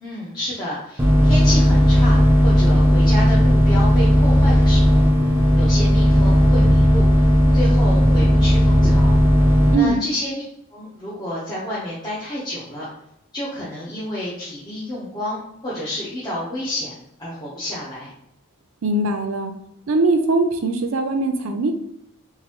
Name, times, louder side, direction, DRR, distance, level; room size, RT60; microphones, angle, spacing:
voice 1, 0.0-5.1 5.5-7.1 7.5-9.2 9.7-10.4 10.7-12.9 13.3-16.9 17.2-18.1, left 1 dB, 20° left, -9 dB, 0.9 m, -29 dB
sound 1, 1.0-9.7, equal, 10° right, 0.6 m, -15 dB
voice 2, 18.8-19.5 19.9-21.7, right 2 dB, 75° right, 7 dB, 0.5 m, -20 dB
3.9 x 2.7 x 3.0 m, 0.79 s
head